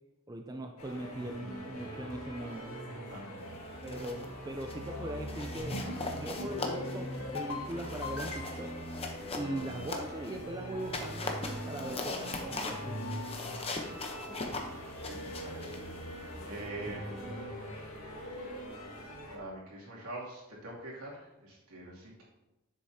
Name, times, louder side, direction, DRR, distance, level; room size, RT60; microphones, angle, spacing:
voice 1, 0.3-2.7 3.8-5.9 6.1-8.7 9.3-13.0 16.9-17.0, right 1 dB, 15° right, 3 dB, 0.5 m, -40 dB
sound 1, 0.8-19.4, equal, 70° left, 1.9 m, -42 dB
voice 2, 3.1-3.4 13.5-14.5 15.0-15.8 16.0-17.5 19.3-22.2, right 1 dB, 85° right, -4 dB, 2.7 m, -45 dB
sound 2, 3.6-4.3 4.6-4.9 5.3-10.4 10.8-16.7, left 3 dB, 25° left, 0.8 m, -41 dB
sound 3, 5.6-6.0 6.4-6.8 7.2-7.6 8.0-8.8, left 2 dB, 90° left, 2.5 m, -39 dB
10.0 x 7.6 x 2.8 m, 1.0 s
head